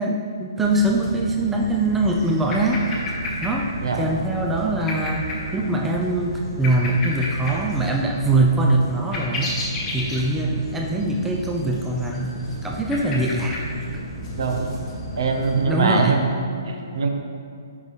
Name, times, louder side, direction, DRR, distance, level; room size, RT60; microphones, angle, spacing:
voice 1, 0.0-2.8 3.4-3.7 4.0-9.6 9.9-12.3 12.6-13.6 15.7-16.2, right 2 dB, 5° right, -1 dB, 0.4 m, -22 dB
sound 1, 0.6-15.7, equal, 15° left, 1.0 m, -32 dB
voice 2, 14.4-14.7 15.2-16.2 16.7-17.1, right 4 dB, 75° right, 3 dB, 0.9 m, -22 dB
7.9 x 5.3 x 3.2 m, 2.4 s
hypercardioid pair, 160°, 2 cm